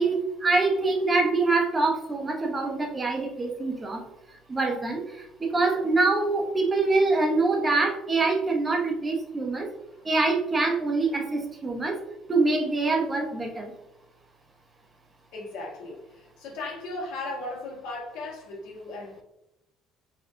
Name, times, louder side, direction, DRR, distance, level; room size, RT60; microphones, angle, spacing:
voice 1, 0.0-4.0 4.5-9.7 10.0-12.0 12.3-13.7, right 3 dB, 20° right, 2 dB, 0.6 m, -25 dB
voice 2, 15.3-19.2, left 2 dB, 90° left, -3 dB, 1.3 m, -37 dB
4.2 x 2.7 x 2.5 m, 0.88 s
cardioid pair, 150°, 0 cm